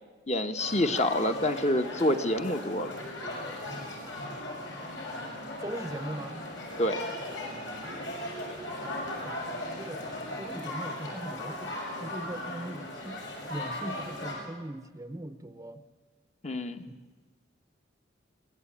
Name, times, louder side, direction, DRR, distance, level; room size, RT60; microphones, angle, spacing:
voice 1, 0.3-2.9 6.8-7.0 16.4-16.8, left 1 dB, 35° left, 7 dB, 1.1 m, -27 dB
sound 1, 0.6-14.3, left 1 dB, 80° left, 6.6 m, -38 dB
voice 2, 5.6-6.4 9.2-9.5 9.8-10.0 10.4-11.7 12.0-15.9 16.9-17.1, right 1 dB, 15° right, 10 dB, 0.7 m, -40 dB
23.0 x 17.5 x 8.7 m, 1.4 s
head